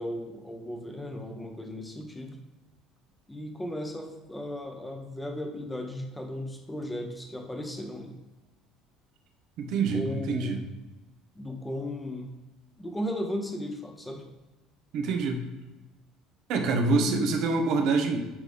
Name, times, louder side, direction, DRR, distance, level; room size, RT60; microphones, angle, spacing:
voice 1, 0.0-2.4 3.3-8.2 9.9-10.7 11.3-12.3 12.8-14.3 16.9-17.2, left 1 dB, 10° left, 3 dB, 1.1 m, -36 dB
voice 2, 9.6-10.6 14.9-15.4 16.5-18.2, right 3 dB, 55° right, 4 dB, 0.9 m, -26 dB
9.6 x 3.6 x 3.5 m, 1.1 s
figure-of-eight pair, 60°, 0 cm